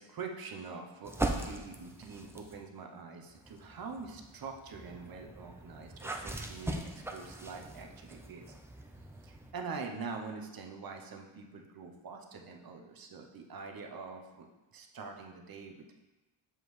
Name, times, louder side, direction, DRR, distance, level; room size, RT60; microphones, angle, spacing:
voice 1, 0.0-8.5 9.2-14.5 14.7-16.0, right 4 dB, 45° right, 3 dB, 0.8 m, -44 dB
sound 1, 1.0-2.6 3.3-9.5, right 2 dB, 5° right, 0.4 m, -40 dB
7.3 x 5.1 x 3.2 m, 1.1 s
cardioid pair, 120°, 48 cm